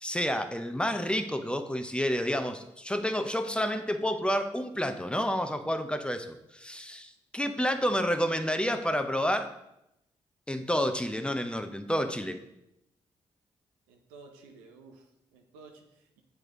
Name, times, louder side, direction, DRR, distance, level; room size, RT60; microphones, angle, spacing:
voice 1, 0.0-9.5 10.5-12.4, equal, 5° left, 8 dB, 0.6 m, -29 dB
voice 2, 13.9-16.2, right 3 dB, 85° right, 4 dB, 0.7 m, -53 dB
7.7 x 3.3 x 3.7 m, 0.83 s
hypercardioid pair, 40°, 13 cm